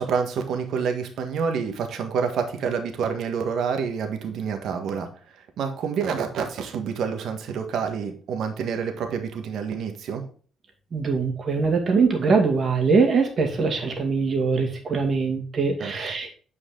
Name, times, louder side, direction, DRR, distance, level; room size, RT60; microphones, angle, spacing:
voice 1, 0.0-5.1 5.6-10.2 15.8-15.9, right 6 dB, 75° right, 5 dB, 1.5 m, -28 dB
voice 2, 10.9-16.3, right 4 dB, 45° right, 3 dB, 2.2 m, -22 dB
9.0 x 4.8 x 3.8 m, 0.41 s
cardioid pair, 90°, 0 cm